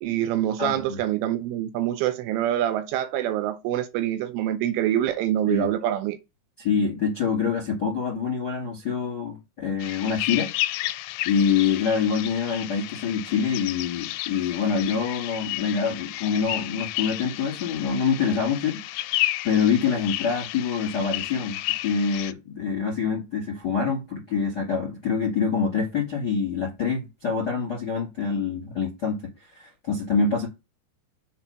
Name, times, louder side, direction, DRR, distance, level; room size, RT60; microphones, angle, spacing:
voice 1, 0.0-6.2, right 12 dB, 80° right, 3.0 m, -25 dB
voice 2, 0.6-1.0 5.5-5.7 6.6-10.5 11.2-18.8 19.4-30.5, left 6 dB, 40° left, 1.5 m, -25 dB
sound 1, 9.8-22.3, left 17 dB, 90° left, 3.3 m, -32 dB
7.1 x 3.6 x 5.6 m
omnidirectional pair, 5.9 m